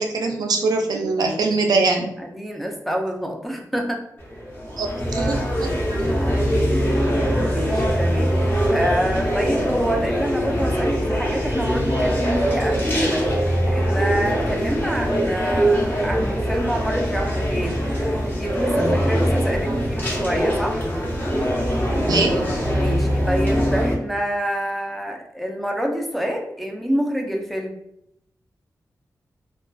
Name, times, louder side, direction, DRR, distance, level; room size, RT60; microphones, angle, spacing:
voice 1, 0.0-2.1 4.8-5.7 22.1-22.5, right 3 dB, 85° right, 3 dB, 0.3 m, -22 dB
voice 2, 0.9-1.5 2.2-4.0 6.6-13.3 13.7-17.9 18.2-20.9 22.7-27.7, equal, ahead, 1 dB, 0.3 m, -27 dB
sound 1, 4.2-23.9, equal, 30° left, 0.9 m, -22 dB
2.4 x 2.3 x 2.2 m, 0.75 s
wide cardioid pair, 140°, 7 cm